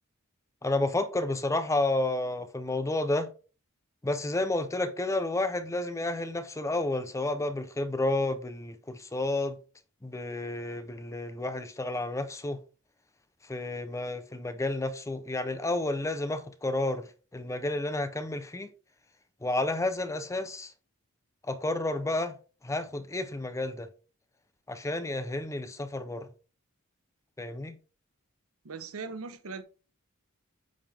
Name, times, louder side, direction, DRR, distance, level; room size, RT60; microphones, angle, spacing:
voice 1, 0.6-3.3 4.0-9.6 10.0-12.6 13.5-17.1 17.3-18.7 19.4-20.7 21.5-22.4 22.6-23.9 24.7-26.3 27.4-27.8, left 2 dB, 15° left, 0.5 m, -31 dB
voice 2, 28.6-29.6, right 4 dB, 80° right, 0.8 m, -39 dB
8.6 x 3.8 x 3.3 m
head